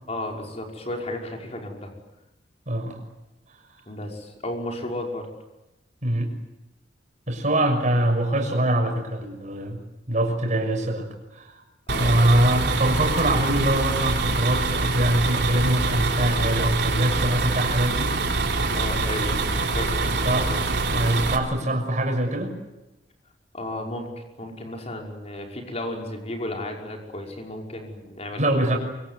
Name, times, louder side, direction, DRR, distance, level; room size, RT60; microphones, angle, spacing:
voice 1, 0.1-1.9 3.9-5.3 11.9-12.2 18.7-20.2 20.5-20.6 23.5-28.8, left 1 dB, 35° left, 2 dB, 5.6 m, -34 dB
voice 2, 2.7-3.0 6.0-6.3 7.3-9.8 10.1-11.6 12.0-18.1 20.2-22.6 28.4-28.8, right 1 dB, 45° right, 3 dB, 6.4 m, -23 dB
sound 1, 11.9-21.4, right 3 dB, 65° right, 3.5 m, -25 dB
24.5 x 24.0 x 9.5 m, 0.99 s
head